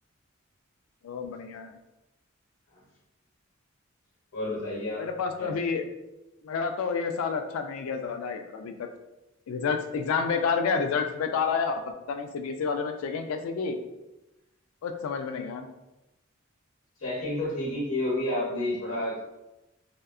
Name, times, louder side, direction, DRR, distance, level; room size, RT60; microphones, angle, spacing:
voice 1, 1.0-1.8 5.0-5.8 6.4-8.9 9.5-11.8 12.1-13.8 14.8-15.7, left 5 dB, 90° left, 6 dB, 0.3 m, -29 dB
voice 2, 4.3-5.0 5.4-5.5 17.0-19.3, left 1 dB, 70° left, -4 dB, 0.8 m, -30 dB
2.7 x 2.2 x 2.4 m, 0.96 s
head